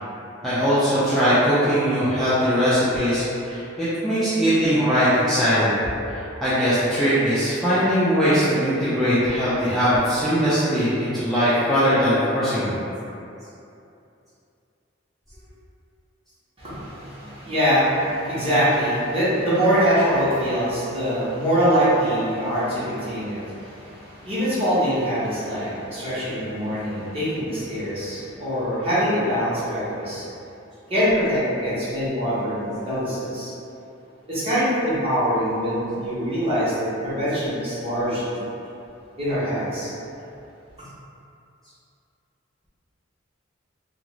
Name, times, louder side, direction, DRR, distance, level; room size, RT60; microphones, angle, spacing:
voice 1, 0.4-5.8 6.1-12.8, equal, ahead, -14 dB, 0.4 m, -20 dB
voice 2, 16.6-30.2 30.9-33.5 34.3-38.4 39.2-39.9, equal, 30° right, -12 dB, 1.0 m, -23 dB
2.5 x 2.4 x 3.0 m, 2.7 s
head